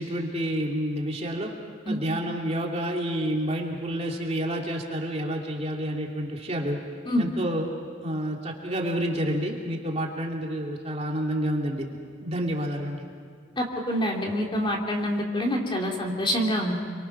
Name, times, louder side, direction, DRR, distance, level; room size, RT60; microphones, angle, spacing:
voice 1, 0.0-1.5 1.9-6.8 7.2-7.7 8.0-11.9 12.2-13.0, equal, 35° right, 0 dB, 2.6 m, -29 dB
voice 2, 13.6-16.7, equal, 25° left, 0 dB, 2.7 m, -26 dB
28.0 x 24.5 x 6.0 m, 2.1 s
head